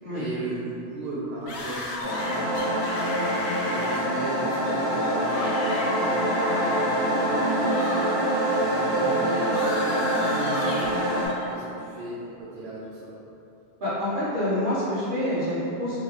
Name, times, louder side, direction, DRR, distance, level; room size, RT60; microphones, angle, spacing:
voice 1, 0.1-3.4 3.7-8.1 8.5-13.1, right 2 dB, 75° right, -7 dB, 0.8 m, -36 dB
sound 1, 1.5-8.0 8.3-11.5, left 1 dB, 90° left, 0.9 m, -35 dB
sound 2, 2.0-11.3, right 1 dB, 60° left, 1.3 m, -25 dB
voice 2, 13.8-16.0, left 1 dB, 50° right, -11 dB, 1.4 m, -27 dB
3.7 x 3.1 x 2.6 m, 2.8 s
omnidirectional pair, 1.1 m